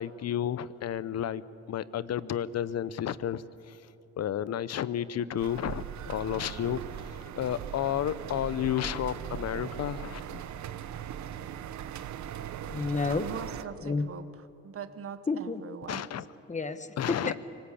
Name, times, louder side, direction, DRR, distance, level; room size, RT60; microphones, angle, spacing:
voice 1, 0.0-1.4 1.7-3.8 4.2-6.8 7.4-10.4 15.9-16.2 17.0-17.4, left 10 dB, 55° left, 17 dB, 0.8 m, -31 dB
sound 1, 5.4-13.6, right 9 dB, 70° right, 1.0 m, -39 dB
voice 2, 12.7-13.3 13.8-14.1 15.3-15.6 16.5-17.4, left 3 dB, 25° left, 11 dB, 1.3 m, -30 dB
voice 3, 13.2-14.3 14.6-16.2, right 7 dB, 45° right, 12 dB, 1.2 m, -42 dB
24.5 x 19.0 x 8.5 m, 2.8 s
cardioid pair, 90°, 30 cm